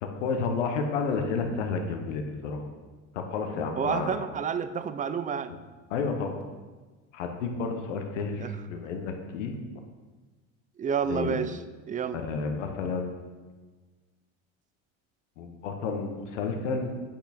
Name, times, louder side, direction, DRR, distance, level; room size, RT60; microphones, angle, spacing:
voice 1, 0.0-2.6 3.1-4.2 5.9-6.4 7.1-9.5 11.1-11.4 12.1-13.3 15.4-16.9, left 4 dB, 90° left, 4 dB, 1.2 m, -31 dB
voice 2, 3.8-5.5 8.4-8.5 10.8-11.6 11.9-12.2, right 7 dB, 25° right, 12 dB, 0.4 m, -29 dB
8.6 x 5.9 x 4.3 m, 1.3 s
supercardioid pair, 100°, 36 cm